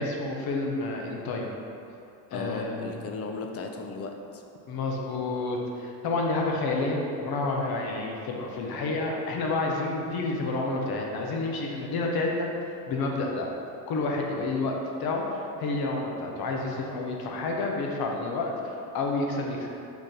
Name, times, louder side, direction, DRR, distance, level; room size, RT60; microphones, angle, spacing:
voice 1, 0.0-1.5 2.3-2.8 4.7-12.5 12.9-13.5 13.9-19.7, left 3 dB, 60° left, 0 dB, 0.8 m, -29 dB
voice 2, 2.3-4.4, left 4 dB, 35° left, 3 dB, 0.5 m, -36 dB
5.1 x 2.6 x 3.8 m, 2.7 s
supercardioid pair, 75°, 41 cm